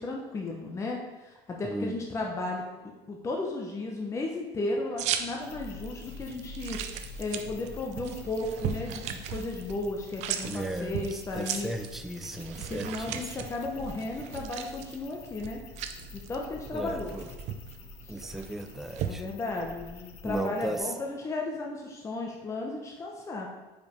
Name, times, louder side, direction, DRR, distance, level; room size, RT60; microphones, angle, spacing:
voice 1, 0.0-2.6 3.1-6.8 7.2-11.7 12.7-15.6 16.1-17.1 18.0-18.1 19.0-23.5, left 2 dB, 20° left, 0 dB, 0.9 m, -34 dB
voice 2, 1.6-2.0 10.4-13.5 16.7-17.3 18.1-19.2 20.2-20.8, right 1 dB, ahead, 6 dB, 0.4 m, -36 dB
sound 1, 5.0-19.1, right 9 dB, 60° right, 0.6 m, -38 dB
sound 2, 5.4-20.8, left 2 dB, 50° left, 0.8 m, -47 dB
5.2 x 4.9 x 5.2 m, 1.1 s
supercardioid pair, 120°, 13 cm